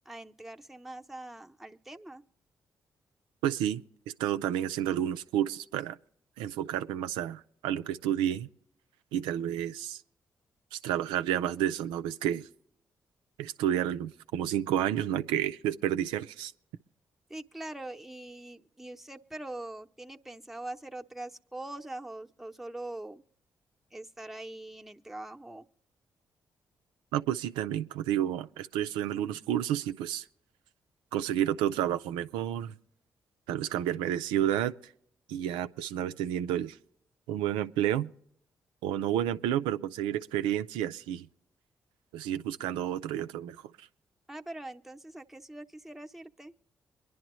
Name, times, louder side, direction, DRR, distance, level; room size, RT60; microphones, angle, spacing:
voice 1, 0.1-2.2 17.3-23.2 23.9-25.6 44.3-46.5, right 2 dB, 5° right, 0.8 m, -43 dB
voice 2, 3.4-3.8 4.2-6.0 6.4-8.5 9.1-10.0 10.7-12.5 13.4-16.5 27.1-30.2 31.1-32.7 33.5-34.9 35.3-36.8 37.3-38.1 38.8-41.3 42.1-43.6, right 11 dB, 90° right, 0.4 m, -30 dB
23.5 x 11.0 x 3.1 m
supercardioid pair, 45°, 8 cm